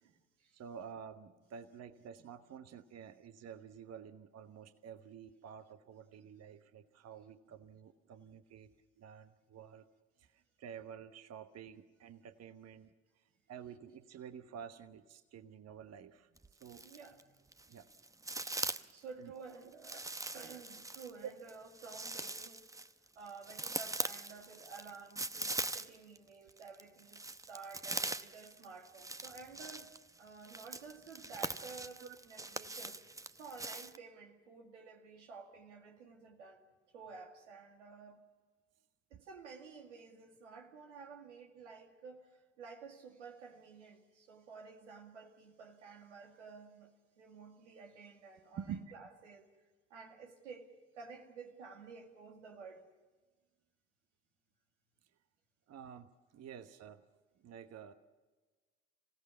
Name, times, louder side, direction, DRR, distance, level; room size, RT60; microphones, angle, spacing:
voice 1, 0.0-0.6 16.8-17.4 17.7-17.8 18.9-22.7 23.2-29.9 30.2-33.0 33.3-36.6 36.9-38.2 39.1-49.5 49.9-52.9, right 5 dB, 85° right, 2 dB, 2.0 m, -52 dB
voice 2, 0.5-8.7 9.0-9.8 10.2-16.3 16.6-16.9 17.7-17.9 19.2-19.3 21.2-21.3 32.0-32.2 48.5-48.9 55.7-57.0 57.4-57.9, right 8 dB, 45° right, 9 dB, 1.1 m, -50 dB
sound 1, 16.4-17.2 17.5-19.0 19.8-26.2 26.5-34.0, right 2 dB, 10° right, 0.8 m, -42 dB
26.0 x 16.5 x 7.2 m, 1.3 s
hypercardioid pair, 55°, 35 cm